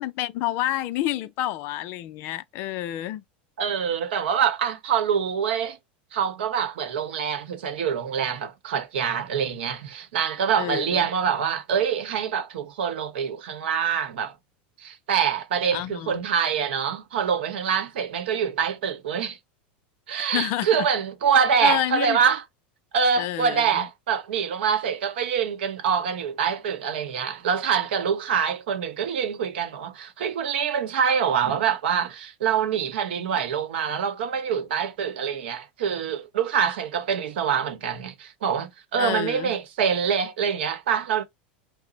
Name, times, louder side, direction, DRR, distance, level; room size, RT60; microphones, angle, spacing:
voice 1, 0.0-3.2 10.6-11.1 15.7-16.2 20.3-20.7 21.6-22.2 23.2-23.9 39.0-39.5, left 14 dB, 40° left, 0.4 m, -29 dB
voice 2, 3.6-5.8 6.1-14.3 14.8-19.4 20.1-22.4 22.9-41.2, right 7 dB, 90° right, 0.9 m, -25 dB
4.9 x 2.0 x 3.9 m
supercardioid pair, 165°, 6 cm